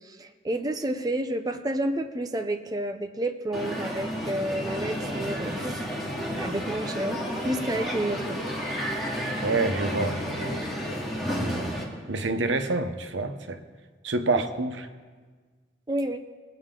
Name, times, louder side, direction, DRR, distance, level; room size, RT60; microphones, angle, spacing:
voice 1, 0.0-5.9 6.4-8.4 14.3-14.4 15.9-16.2, right 1 dB, 20° right, 6 dB, 0.5 m, -30 dB
Crowd, 3.5-11.8, equal, ahead, 2.1 m, -31 dB
voice 2, 9.4-10.6 11.4-11.7 12.1-13.6 14.0-14.8, right 3 dB, 90° right, 8 dB, 0.9 m, -27 dB
21.0 x 7.9 x 3.8 m, 1.5 s
head